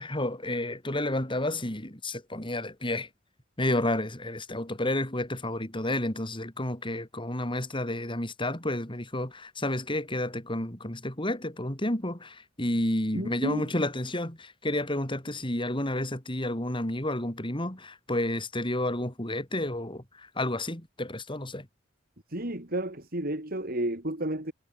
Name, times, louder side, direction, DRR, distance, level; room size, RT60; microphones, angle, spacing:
voice 1, 0.0-3.1 3.6-21.7, left 1 dB, 25° left, 4.6 m, -31 dB
voice 2, 13.1-13.7 22.3-24.5, right 1 dB, 50° right, 4.1 m, -31 dB
head